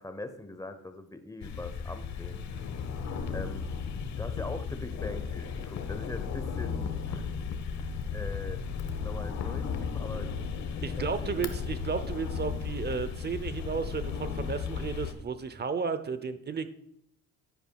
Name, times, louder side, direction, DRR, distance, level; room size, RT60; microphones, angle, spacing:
voice 1, 0.0-2.5 3.3-3.7 4.2-7.3 8.1-8.6 9.0-10.3 10.9-11.6, left 2 dB, 10° left, 9 dB, 0.9 m, -42 dB
sound 1, 1.4-15.1, left 6 dB, 65° left, 1.0 m, -35 dB
voice 2, 10.8-16.7, right 5 dB, 35° right, 12 dB, 0.7 m, -33 dB
10.5 x 9.9 x 2.3 m, 0.71 s
cardioid pair, 90°, 30 cm